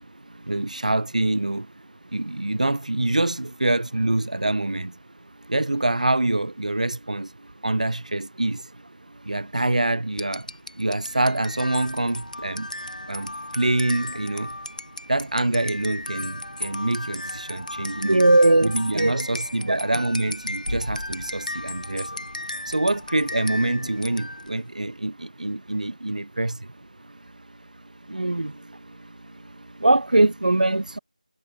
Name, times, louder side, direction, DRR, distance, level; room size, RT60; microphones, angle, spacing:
voice 1, 0.5-1.7 2.1-5.0 5.5-7.3 7.6-8.7 9.2-10.5 10.8-12.7 13.1-14.5 15.1-18.2 18.6-22.3 22.7-26.7, right 2 dB, 65° right, 1.0 m, -25 dB
sound 1, 10.1-24.6, left 1 dB, 85° left, 1.4 m, -35 dB
voice 2, 18.0-19.1 19.7-19.8 28.1-28.5 29.8-31.0, right 2 dB, 85° right, 0.4 m, -19 dB
figure-of-eight pair, 170°, 4 cm